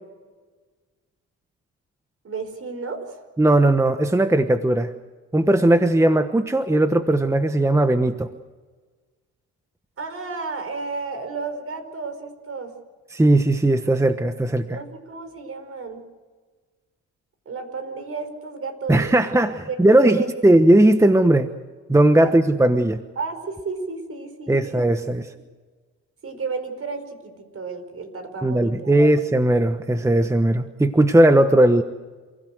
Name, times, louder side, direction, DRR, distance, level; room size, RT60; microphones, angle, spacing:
voice 1, 2.2-3.2 10.0-12.7 14.7-16.0 17.5-20.3 22.2-22.4 23.2-24.8 26.2-29.1, right 4 dB, 50° right, 8 dB, 5.3 m, -32 dB
voice 2, 3.4-4.9 5.3-8.3 13.1-14.8 18.9-21.5 21.9-23.0 24.5-25.3 28.4-31.8, right 1 dB, 10° right, 8 dB, 1.2 m, -18 dB
28.5 x 16.5 x 8.0 m, 1.4 s
cardioid pair, 90°, 30 cm